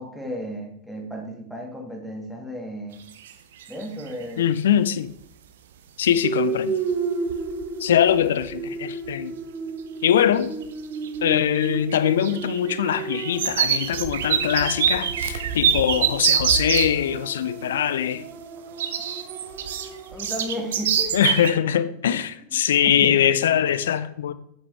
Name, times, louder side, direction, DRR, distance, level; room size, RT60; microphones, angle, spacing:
voice 1, 0.0-3.0 3.7-4.5 20.1-21.2 22.8-23.3, equal, ahead, 1.9 m, -34 dB
sound 1, 3.1-3.3 3.6-4.2 6.2-6.3 6.9-7.0 7.3-7.6 7.9-8.5 9.0-9.1 10.2-10.7 10.9-16.9 18.8-21.5, right 8 dB, 60° right, 0.7 m, -25 dB
voice 2, 4.4-5.1 6.0-6.7 7.8-9.3 10.0-10.5 11.2-18.2 21.1-24.3, left 9 dB, 60° left, 0.5 m, -22 dB
sound 2, 6.2-20.4, right 4 dB, 40° right, 1.1 m, -33 dB
8.7 x 7.3 x 3.3 m
figure-of-eight pair, 90°, 0 cm